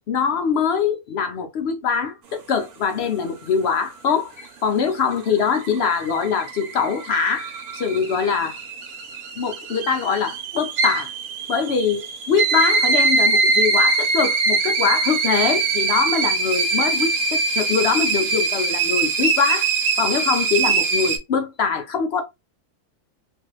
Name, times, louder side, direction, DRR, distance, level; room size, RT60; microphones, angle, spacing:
voice 1, 0.1-7.5 7.7-8.6 9.4-11.1 11.5-19.7 20.0-22.2, left 6 dB, 70° left, 0.6 m, -23 dB
sound 1, 4.9-21.2, right 4 dB, 85° right, 1.2 m, -23 dB
2.6 x 2.5 x 2.9 m
omnidirectional pair, 1.6 m